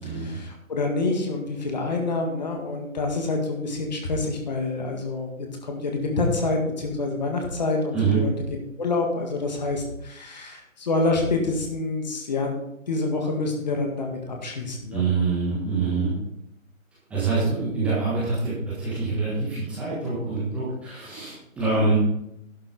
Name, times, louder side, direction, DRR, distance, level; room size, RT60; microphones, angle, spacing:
voice 1, 0.0-12.6 12.9-15.0, left 3 dB, 30° left, 2 dB, 1.7 m, -27 dB
voice 2, 14.9-16.1 17.1-21.9, right 4 dB, 5° right, -10 dB, 1.4 m, -25 dB
11.5 x 7.7 x 3.9 m, 0.80 s
figure-of-eight pair, 150°, 41 cm